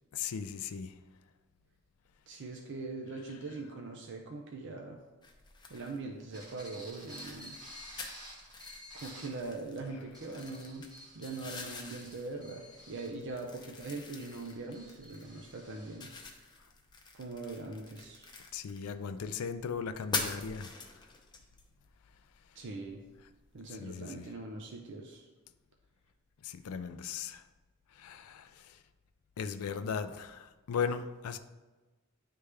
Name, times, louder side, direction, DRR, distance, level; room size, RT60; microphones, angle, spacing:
voice 1, 0.1-0.9 18.5-20.7 23.8-24.3 26.4-27.4 28.0-28.5 29.4-31.4, left 6 dB, 85° left, 10 dB, 0.4 m, -37 dB
voice 2, 2.3-5.0 5.7-7.6 8.9-10.9 11.1-16.1 17.2-18.3 22.6-23.0 23.5-25.3, right 3 dB, 55° right, 1 dB, 0.6 m, -42 dB
sound 1, 5.2-23.6, left 4 dB, 20° left, 0.6 m, -45 dB
sound 2, 6.3-9.4 10.0-16.3, equal, 20° right, 1.3 m, -52 dB
9.6 x 3.4 x 3.3 m, 1.2 s
head